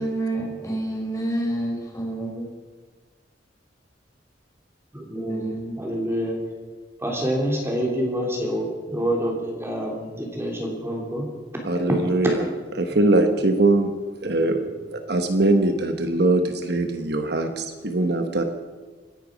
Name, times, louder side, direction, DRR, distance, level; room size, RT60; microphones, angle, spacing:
voice 1, 0.0-2.4 5.1-5.8, right 1 dB, 20° left, -2 dB, 4.8 m, -28 dB
voice 2, 4.9-6.4 7.0-11.3 14.4-14.8, equal, 15° right, -1 dB, 3.1 m, -27 dB
voice 3, 11.6-12.4 12.8-14.0 14.2-14.7 14.9-18.4, right 2 dB, 60° right, 6 dB, 1.1 m, -21 dB
26.0 x 10.5 x 5.1 m, 1.4 s
head